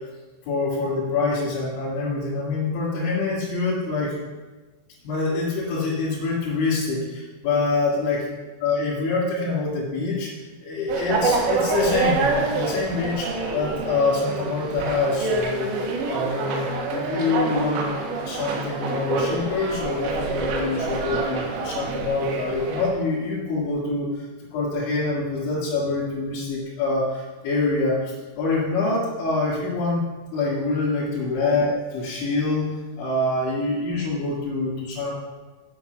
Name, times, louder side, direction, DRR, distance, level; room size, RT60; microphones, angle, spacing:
voice 1, 0.5-4.2 5.0-8.3 8.6-10.3 10.6-15.7 16.1-18.0 18.2-24.2 24.5-30.0 30.3-32.7 33.0-35.1, left 3 dB, 85° left, -7 dB, 4.3 m, -25 dB
sound 1, 10.9-22.9, right 3 dB, 80° right, 3.5 m, -27 dB
8.5 x 7.1 x 6.8 m, 1.3 s
omnidirectional pair, 5.2 m